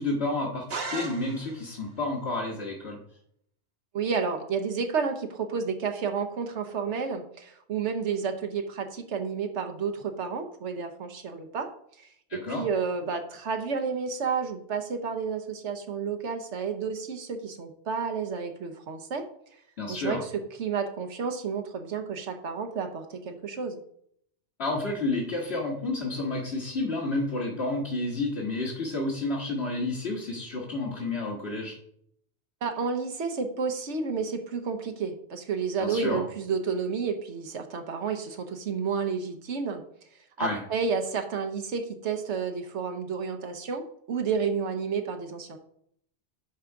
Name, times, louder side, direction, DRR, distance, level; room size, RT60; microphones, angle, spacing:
voice 1, 0.0-3.0 12.3-12.6 19.8-20.2 24.6-31.7 35.8-36.2 40.4-40.6, left 2 dB, 65° left, -5 dB, 1.8 m, -30 dB
sound 1, 0.7-1.8, right 4 dB, 65° right, 1.4 m, -36 dB
voice 2, 3.9-11.7 12.3-19.3 19.9-23.8 32.6-39.8 40.4-45.6, right 5 dB, 85° right, 5 dB, 1.3 m, -31 dB
11.0 x 3.8 x 4.7 m, 0.67 s
omnidirectional pair, 1.2 m